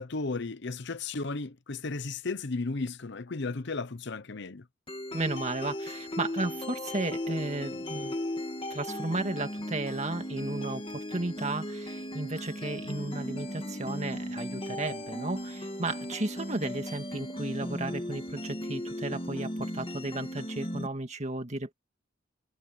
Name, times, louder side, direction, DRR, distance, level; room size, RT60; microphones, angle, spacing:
voice 1, 0.0-4.6, left 3 dB, 55° left, 0.8 m, -34 dB
sound 1, 4.9-20.9, left 1 dB, 25° left, 2.2 m, -37 dB
voice 2, 5.1-8.1 8.7-21.7, right 2 dB, 35° right, 2.0 m, -34 dB
head